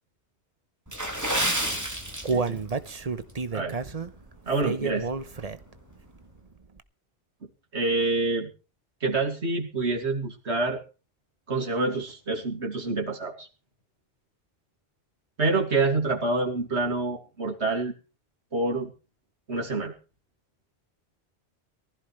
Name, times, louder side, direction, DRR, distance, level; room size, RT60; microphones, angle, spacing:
Water / Splash splatter, 0.9-2.8 3.1-3.3 3.9-4.1 4.6-4.7, right 1 dB, 15° right, 3.1 m, -29 dB
Human voice, 1.6-5.8 6.2-6.3 6.8-6.9, right 4 dB, 35° right, 1.0 m, -30 dB
voice 1, 2.3-2.6 3.5-3.8 4.5-5.1 7.7-8.5 9.0-10.8 11.5-13.5 15.4-17.9 18.5-18.9 19.5-19.9, right 3 dB, 85° right, 0 dB, 2.7 m, -27 dB
19.5 x 15.0 x 3.2 m, 0.34 s
omnidirectional pair, 1.1 m